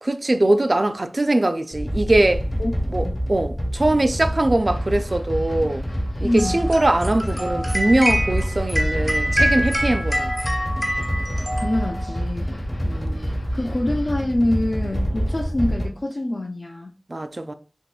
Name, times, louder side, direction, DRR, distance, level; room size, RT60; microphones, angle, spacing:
voice 1, 0.0-2.5 2.9-5.9 6.2-10.4 12.9-13.3 17.1-17.5, right 2 dB, 50° right, 0.3 m, -21 dB
sound 1, 1.7-15.9, equal, 30° left, 1.0 m, -26 dB
sound 2, 4.5-14.1, equal, 75° left, 1.2 m, -45 dB
voice 2, 6.2-6.7 11.5-12.5 13.5-16.9, left 1 dB, 50° left, 0.4 m, -25 dB
sound 3, 6.4-12.2, equal, 5° left, 0.9 m, -26 dB
3.5 x 2.9 x 2.3 m
wide cardioid pair, 65°, 0 cm